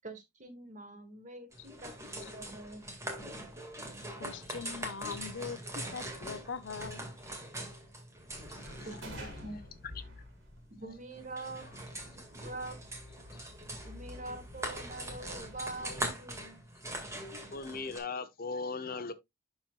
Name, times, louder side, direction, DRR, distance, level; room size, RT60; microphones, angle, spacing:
voice 1, 0.0-2.9 8.8-9.6 10.7-11.7 12.0-12.8 13.7-16.6, right 2 dB, 45° right, 1.8 m, -45 dB
sound 1, 1.5-18.0, right 1 dB, 15° right, 2.0 m, -43 dB
voice 2, 4.2-7.0, left 5 dB, 85° left, 0.7 m, -41 dB
sound 2, 8.3-15.9, left 1 dB, 90° right, 3.0 m, -50 dB
voice 3, 8.6-9.0 9.5-9.6 13.3-13.5 17.5-19.1, left 4 dB, 50° left, 0.8 m, -39 dB
11.5 x 4.3 x 2.4 m
head